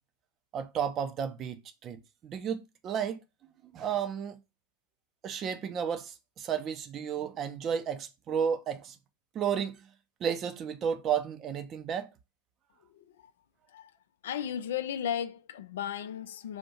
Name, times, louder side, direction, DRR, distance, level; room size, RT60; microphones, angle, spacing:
voice 1, 0.5-3.2 3.7-4.4 5.2-9.0 9.3-9.9 10.2-12.1, right 8 dB, 30° right, 0.6 m, -32 dB
voice 2, 12.9-13.3 13.7-13.9 14.2-16.6, left 9 dB, 60° left, 0.4 m, -35 dB
4.2 x 2.6 x 4.4 m
figure-of-eight pair, 90°, 0 cm